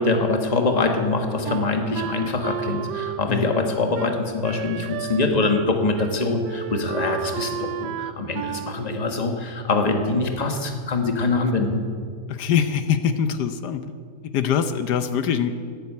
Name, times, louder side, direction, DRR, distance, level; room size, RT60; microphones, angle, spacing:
voice 1, 0.0-11.8, left 3 dB, 25° left, 4 dB, 1.3 m, -24 dB
Wind instrument woodwind instrument, 1.5-5.7 6.0-6.2 6.4-8.8, right 10 dB, 90° right, 1.2 m, -32 dB
voice 2, 12.3-13.9 14.2-15.6, left 8 dB, 80° left, 10 dB, 1.3 m, -23 dB
12.5 x 11.0 x 8.4 m, 2.1 s
omnidirectional pair, 1.7 m